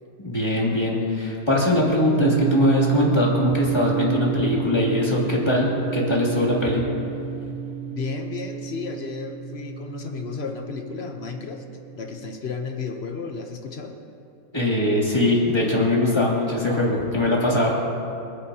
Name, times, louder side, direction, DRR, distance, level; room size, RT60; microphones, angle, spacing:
voice 1, 0.2-6.8 14.5-17.7, left 1 dB, 10° left, -4 dB, 2.6 m, -21 dB
sound 1, 2.2-12.4, right 6 dB, 80° right, 4.6 m, -29 dB
voice 2, 7.9-11.6 12.0-13.9, left 5 dB, 70° left, 4 dB, 0.6 m, -33 dB
28.5 x 10.0 x 2.9 m, 2.7 s
omnidirectional pair, 2.3 m